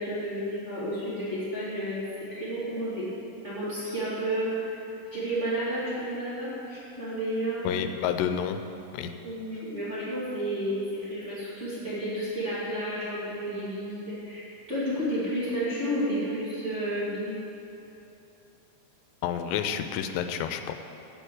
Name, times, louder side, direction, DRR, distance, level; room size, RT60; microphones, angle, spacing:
voice 1, 0.0-2.0 2.3-3.1 3.4-4.8 5.1-7.6 9.2-17.4, right 1 dB, 20° right, -11 dB, 2.3 m, -31 dB
voice 2, 7.7-8.6 8.9-9.1 19.2-20.7, left 8 dB, 85° left, 8 dB, 2.7 m, -29 dB
9.1 x 7.4 x 7.9 m, 2.9 s
omnidirectional pair, 4.8 m